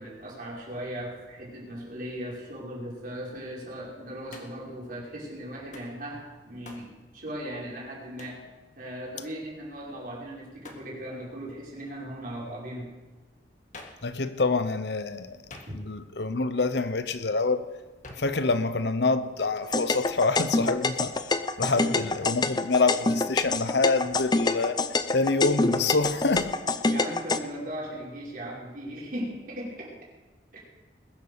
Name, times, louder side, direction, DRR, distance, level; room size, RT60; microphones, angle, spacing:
voice 1, 0.0-8.4 8.8-12.9 15.7-15.8 21.6-21.8 24.0-24.1 26.9-29.9 30.5-30.6, right 1 dB, 50° right, 5.2 m, -38 dB
Hands, 4.3-4.7 5.7-6.0 6.6-6.9 8.2-8.4 10.6-10.9 13.7-14.1 15.5-16.1 18.0-18.4, left 2 dB, 45° left, 1.9 m, -47 dB
voice 2, 14.0-15.4 15.7-17.7 18.2-21.1 21.6-24.8 25.1-26.5, left 3 dB, 70° left, 0.9 m, -26 dB
sound 1, 19.7-27.4, left 3 dB, 25° left, 0.6 m, -26 dB
21.0 x 8.2 x 6.9 m
head